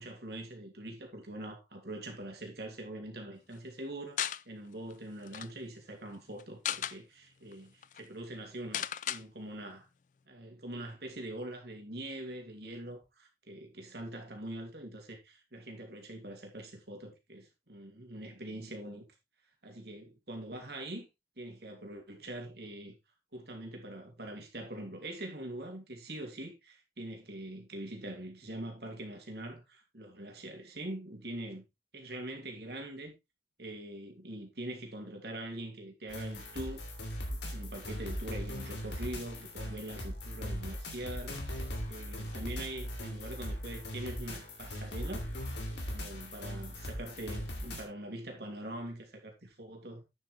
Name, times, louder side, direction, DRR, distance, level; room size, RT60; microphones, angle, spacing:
voice 1, 0.0-9.9 10.3-19.0 19.6-21.1 21.4-22.9 23.3-31.6 31.9-33.1 33.6-36.8 37.3-41.4 41.9-45.3 45.9-50.0, right 1 dB, 65° right, 3.0 m, -43 dB
sound 1, 4.2-4.4 4.9-5.0 5.2-5.5 6.4-7.0 7.5-7.6 7.8-8.0 8.7-9.2, left 10 dB, 45° left, 0.4 m, -35 dB
sound 2, 36.1-47.8, equal, 80° left, 3.1 m, -39 dB
9.5 x 7.1 x 3.4 m
head